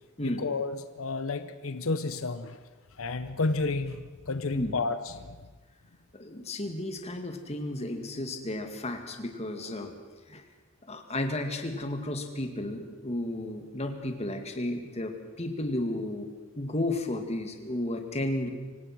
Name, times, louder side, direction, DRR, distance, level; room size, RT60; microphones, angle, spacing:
voice 1, 0.2-2.6 3.0-5.4, left 3 dB, 85° left, 11 dB, 0.9 m, -31 dB
voice 2, 6.1-9.9 10.3-10.4 10.9-16.3 16.6-18.5, left 1 dB, 30° left, 5 dB, 2.3 m, -33 dB
25.5 x 17.5 x 6.2 m, 1.3 s
head